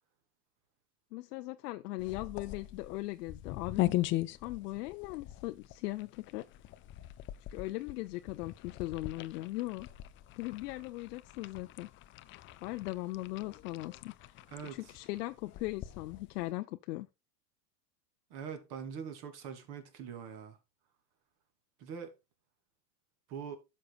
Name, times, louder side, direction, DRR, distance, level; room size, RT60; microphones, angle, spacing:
voice 1, 1.1-3.9 4.4-6.5 7.5-9.9 10.4-11.9 12.6-14.4 14.7-17.1, left 19 dB, 70° left, 0.7 m, -39 dB
sound 1, 2.0-16.5, left 16 dB, 25° left, 0.4 m, -40 dB
voice 2, 18.3-20.6 21.8-22.1 23.3-23.6, right 7 dB, 50° right, 2.9 m, -43 dB
12.5 x 6.7 x 2.4 m
hypercardioid pair, 115°, 49 cm